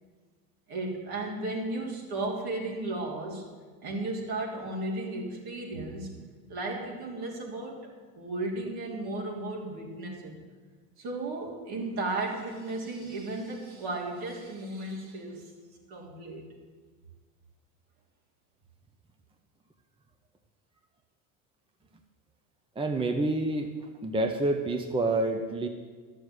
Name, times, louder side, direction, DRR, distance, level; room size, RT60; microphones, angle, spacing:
voice 1, 0.7-3.5 3.8-6.2 6.5-10.4 11.0-15.5 15.9-16.5, right 2 dB, 60° right, -1 dB, 3.5 m, -35 dB
voice 2, 22.8-23.7 24.0-25.7, right 2 dB, 10° right, 5 dB, 0.8 m, -28 dB
12.0 x 6.5 x 9.6 m, 1.5 s
supercardioid pair, 100°, 42 cm